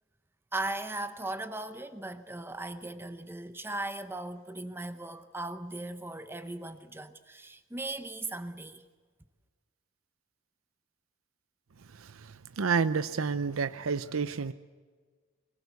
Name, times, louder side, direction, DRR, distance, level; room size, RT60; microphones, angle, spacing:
voice 1, 0.5-8.8, right 2 dB, 10° right, 0.8 m, -38 dB
voice 2, 12.6-14.5, right 5 dB, 85° right, 0.6 m, -29 dB
21.5 x 20.5 x 8.2 m
head